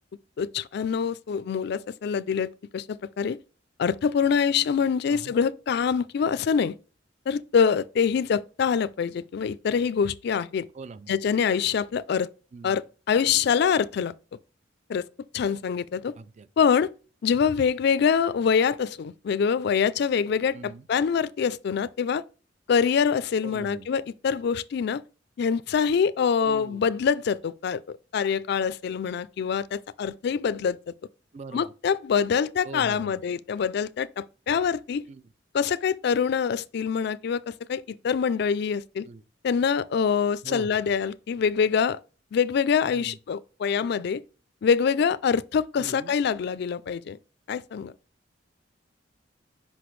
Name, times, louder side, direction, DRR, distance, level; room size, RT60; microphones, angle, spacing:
voice 1, 0.4-3.4 3.8-6.8 7.3-10.7 11.1-12.3 12.6-14.1 14.9-15.1 15.3-16.1 16.6-16.9 17.2-22.2 22.7-25.0 25.4-30.9 31.5-35.0 35.5-39.1 39.4-42.0 42.3-44.2 44.6-47.2 47.5-47.9, left 6 dB, 60° left, 0.3 m, -25 dB
voice 2, 10.7-11.1 12.5-12.8 16.1-16.5 20.5-20.9 23.4-23.9 26.4-26.8 31.3-31.7 32.6-33.2 35.1-35.2 39.0-39.2 40.4-40.9 42.9-43.2 45.8-46.1, right 4 dB, 40° right, 0.4 m, -41 dB
6.0 x 5.3 x 3.1 m
head